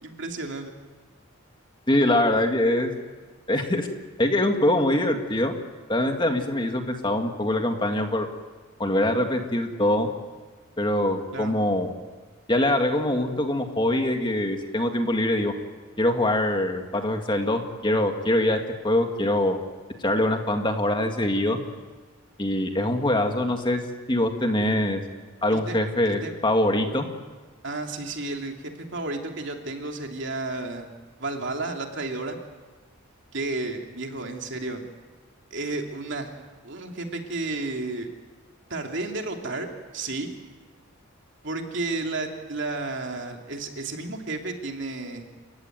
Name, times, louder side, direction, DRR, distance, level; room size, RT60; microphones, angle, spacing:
voice 1, 0.0-0.7 11.3-11.5 25.5-25.8 26.0-26.3 27.6-30.9 31.2-32.4 33.3-34.8 35.5-36.3 36.6-38.1 38.7-40.3 41.4-45.2, right 2 dB, 55° right, 3 dB, 2.9 m, -32 dB
voice 2, 1.9-2.9 3.5-3.9 4.2-5.5 5.9-8.3 8.8-10.1 10.8-11.9 12.5-15.5 16.0-18.6 18.8-19.6 20.0-21.6 22.4-23.8 24.1-25.0 25.4-27.1, left 1 dB, 20° left, 4 dB, 2.0 m, -23 dB
29.0 x 15.5 x 9.3 m, 1.4 s
head